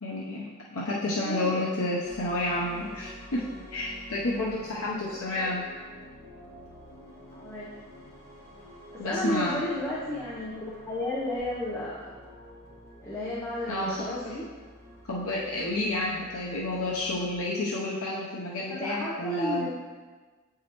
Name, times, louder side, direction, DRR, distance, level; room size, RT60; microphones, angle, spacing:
voice 1, 0.0-3.4 3.7-5.6 9.0-9.6 13.7-14.0 15.1-19.7, left 2 dB, 75° left, -4 dB, 0.8 m, -30 dB
voice 2, 1.2-1.7 5.3-5.5 7.4-7.7 8.9-12.0 13.0-14.4 18.7-19.7, left 1 dB, 15° left, -7 dB, 0.8 m, -33 dB
sound 1, 2.0-17.3, equal, 30° left, 1.8 m, -48 dB
8.3 x 4.8 x 3.0 m, 1.4 s
head